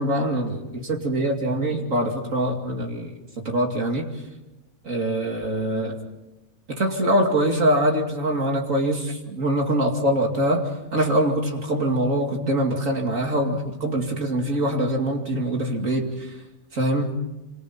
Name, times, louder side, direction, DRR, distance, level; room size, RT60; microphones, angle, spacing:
voice 1, 0.0-4.1 4.8-6.0 6.7-16.1 16.7-17.2, right 1 dB, 65° right, 1 dB, 3.0 m, -24 dB
29.5 x 26.0 x 4.4 m, 0.97 s
omnidirectional pair, 1.5 m